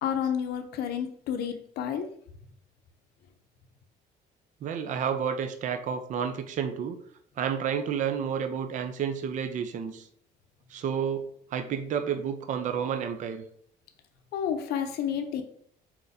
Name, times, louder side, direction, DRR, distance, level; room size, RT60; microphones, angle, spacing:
voice 1, 0.0-2.1 14.3-15.4, left 8 dB, 70° left, 7 dB, 0.6 m, -30 dB
voice 2, 4.6-7.0 7.4-10.1 10.7-13.4, right 7 dB, 45° right, 8 dB, 0.4 m, -30 dB
4.3 x 4.0 x 2.6 m, 0.63 s
cardioid pair, 110°, 17 cm